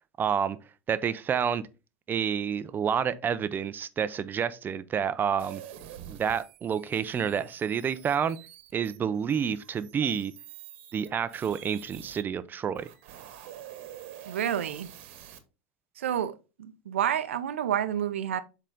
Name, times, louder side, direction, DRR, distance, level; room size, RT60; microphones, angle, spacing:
voice 1, 0.2-0.6 0.9-1.6 2.1-5.6 6.1-8.4 8.7-10.3 10.9-12.9, right 7 dB, 30° right, 0.6 m, -29 dB
sound 1, 5.4-12.2 12.7-15.4, right 11 dB, 70° right, 1.3 m, -47 dB
voice 2, 14.3-14.9 16.0-18.4, right 10 dB, 90° right, 0.7 m, -29 dB
7.4 x 3.9 x 3.7 m
hypercardioid pair, 100°, 7 cm